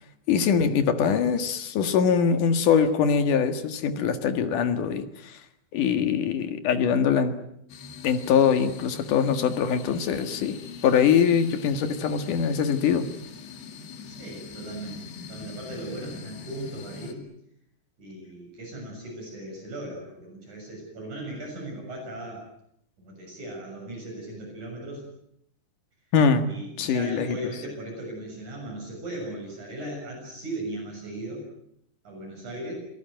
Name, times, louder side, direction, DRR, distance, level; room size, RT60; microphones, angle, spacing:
voice 1, 0.3-5.4 5.7-7.3 8.0-10.6 10.8-13.0 26.1-26.5 26.8-27.4, left 7 dB, 55° left, 8 dB, 2.9 m, -23 dB
sound 1, 7.7-17.1, left 5 dB, 75° left, 4.5 m, -42 dB
voice 2, 14.1-17.2 18.0-22.5 23.0-25.0 26.4-31.4 32.0-32.7, right 1 dB, 45° right, 0 dB, 8.2 m, -37 dB
27.5 x 18.5 x 9.2 m, 0.76 s
omnidirectional pair, 4.8 m